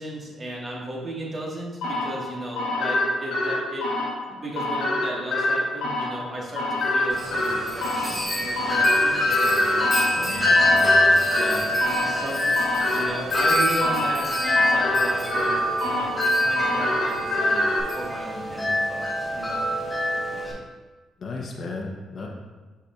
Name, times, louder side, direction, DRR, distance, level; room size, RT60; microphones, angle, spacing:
voice 1, 0.0-3.9 4.3-10.5 11.3-12.5 12.9-17.6 18.0-19.6, right 1 dB, 35° right, -3 dB, 1.6 m, -35 dB
sound 1, 1.8-17.8, left 2 dB, 85° left, 1.0 m, -27 dB
Wind chime, 7.1-20.5, left 1 dB, 5° left, 1.9 m, -24 dB
voice 2, 10.1-11.1 21.2-22.3, left 3 dB, 45° left, -1 dB, 0.9 m, -35 dB
6.7 x 5.7 x 2.4 m, 1.3 s
cardioid pair, 105°, 0 cm